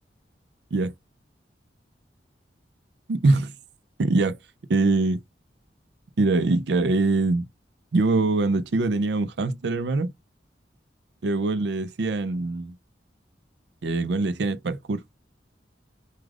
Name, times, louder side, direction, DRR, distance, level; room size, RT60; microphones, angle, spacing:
voice 1, 3.1-3.5 4.0-4.4 4.7-5.2 6.2-7.4 7.9-10.1 11.2-12.7 13.8-15.0, right 3 dB, 70° right, 0.5 m, -23 dB
2.4 x 2.3 x 3.2 m
head